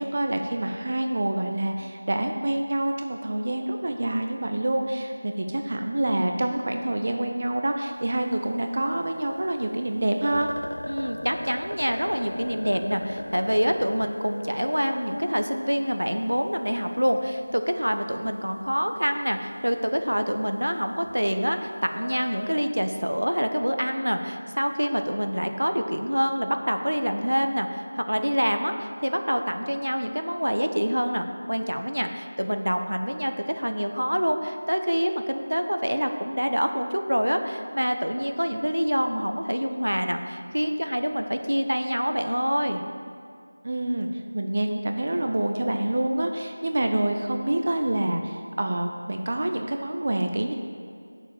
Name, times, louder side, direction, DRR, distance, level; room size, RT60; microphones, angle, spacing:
voice 1, 0.0-10.5 18.1-18.2 43.6-44.1 44.3-50.5, right 1 dB, 40° right, 4 dB, 0.7 m, -27 dB
sound 1, 8.0-8.8 9.0-9.1 9.6-9.7 10.0-10.1 10.3-16.6 17.8-17.9 18.2-18.4 18.8-19.1 19.5-19.6 20.0-20.4 20.9-22.7, left 1 dB, 65° left, 0.4 m, -38 dB
voice 2, 10.9-42.9, equal, 85° right, 6 dB, 1.0 m, -26 dB
7.6 x 6.9 x 7.1 m, 2.3 s
figure-of-eight pair, 170°, 0 cm